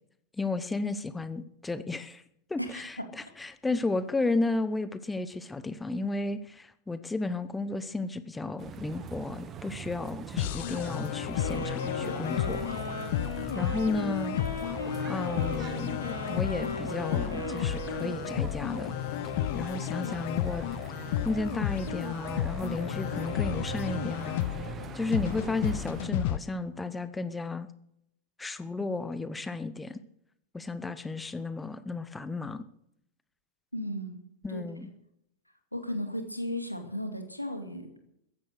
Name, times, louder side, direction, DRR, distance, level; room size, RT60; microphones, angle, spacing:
voice 1, 0.4-2.2 2.5-12.6 13.5-14.4 15.1-16.0 16.3-18.9 19.5-20.7 21.2-27.7 28.4-30.0 30.5-32.7 34.4-34.9, left 3 dB, 10° left, 13 dB, 0.8 m, -33 dB
voice 2, 2.6-3.1 33.7-34.2 34.5-34.6 35.7-38.0, left 1 dB, 90° left, 5 dB, 2.4 m, -35 dB
sound 1, 8.6-26.1, right 8 dB, 25° right, 1.2 m, -42 dB
sound 2, 10.4-26.4, left 14 dB, 50° left, 0.5 m, -33 dB
Wind instrument woodwind instrument, 11.3-18.5, left 1 dB, 70° left, 5.2 m, -37 dB
14.5 x 11.0 x 6.6 m, 0.75 s
figure-of-eight pair, 90°, 0 cm